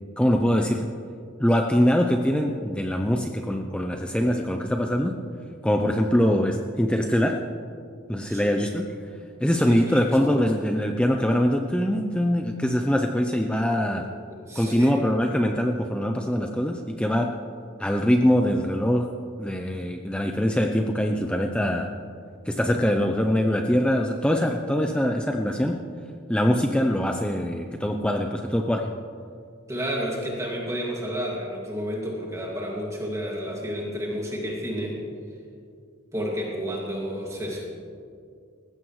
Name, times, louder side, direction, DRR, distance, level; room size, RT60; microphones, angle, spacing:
voice 1, 0.2-0.9 1.4-5.2 5.6-7.4 8.1-8.9 9.4-14.1 14.6-17.4 17.8-21.9 22.5-25.8 26.3-28.9, equal, 5° left, 3 dB, 0.6 m, -23 dB
voice 2, 8.3-8.6 9.7-10.4 13.9-14.0 14.3-15.0 29.7-35.0 36.1-37.7, equal, 15° right, -3 dB, 2.2 m, -31 dB
19.5 x 15.5 x 3.2 m, 2.3 s
head